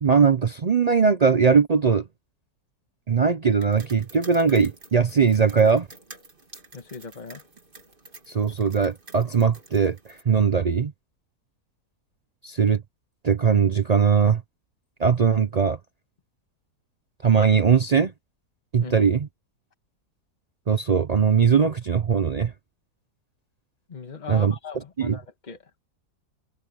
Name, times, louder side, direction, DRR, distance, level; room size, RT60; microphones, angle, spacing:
voice 1, 0.0-2.1 3.1-5.9 8.3-10.0 10.3-10.9 12.4-12.8 13.2-14.4 15.0-15.8 17.2-18.1 18.7-19.3 20.7-22.5 24.3-24.5 25.0-25.2, right 6 dB, 70° right, 0.3 m, -20 dB
sound 1, 3.6-10.2, right 2 dB, 35° right, 2.5 m, -49 dB
voice 2, 6.7-7.4 18.8-19.1 23.9-25.8, left 5 dB, 30° left, 1.5 m, -39 dB
omnidirectional pair, 1.7 m